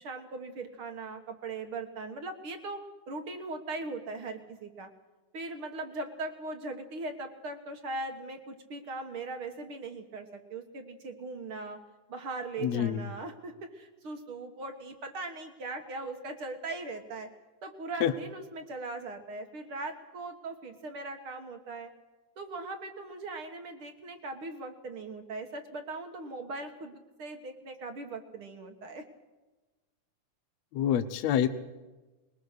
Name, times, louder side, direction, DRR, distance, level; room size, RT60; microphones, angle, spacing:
voice 1, 0.0-4.9 5.3-11.8 12.1-17.3 17.6-21.9 22.4-29.0, right 3 dB, 55° right, 6 dB, 1.8 m, -40 dB
voice 2, 12.6-13.0 18.0-18.1 30.7-31.5, left 10 dB, 70° left, 11 dB, 1.9 m, -26 dB
21.5 x 20.5 x 6.6 m, 1.2 s
omnidirectional pair, 3.6 m